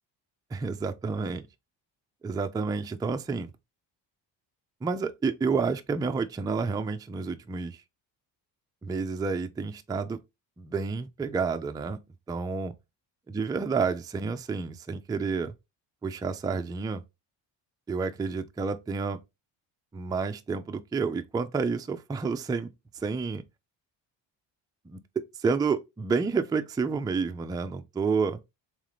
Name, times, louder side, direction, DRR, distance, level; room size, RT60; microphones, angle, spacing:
voice 1, 0.5-1.5 2.2-3.5 4.8-7.8 8.8-10.2 10.6-12.0 12.3-12.7 13.3-15.5 16.0-17.0 17.9-19.2 19.9-23.4 24.9-28.4, right 4 dB, 10° right, 0.3 m, -30 dB
3.7 x 3.2 x 3.2 m
cardioid pair, 90°, 44 cm